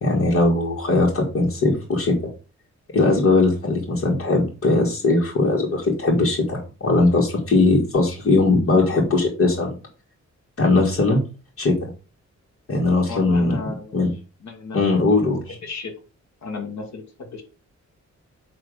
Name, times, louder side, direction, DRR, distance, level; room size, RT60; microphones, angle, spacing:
voice 1, 0.0-2.3 2.9-9.7 10.6-11.2 11.6-11.9 12.7-13.6 13.9-14.1 14.7-15.6, left 3 dB, 50° left, -4 dB, 1.9 m, -19 dB
voice 2, 13.1-14.0 14.4-15.3 15.6-15.9 16.4-17.4, left 4 dB, 70° left, 2 dB, 1.8 m, -34 dB
9.2 x 3.2 x 4.9 m, 0.33 s
wide cardioid pair, 170°, 29 cm